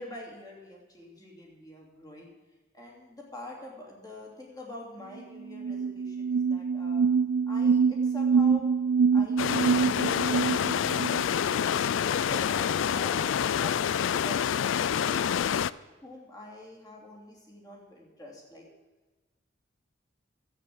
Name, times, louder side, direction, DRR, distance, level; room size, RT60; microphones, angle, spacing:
voice 1, 0.0-2.3 2.7-7.1 7.5-8.7 9.1-9.7 11.2-15.5 16.0-18.7, left 1 dB, 20° left, -2 dB, 3.0 m, -45 dB
sound 1, 5.2-5.3 5.5-11.2, right 5 dB, 85° right, 0.4 m, -25 dB
sound 2, 9.4-15.7, left 8 dB, 75° left, 0.3 m, -27 dB
12.0 x 8.6 x 7.8 m, 1.2 s
head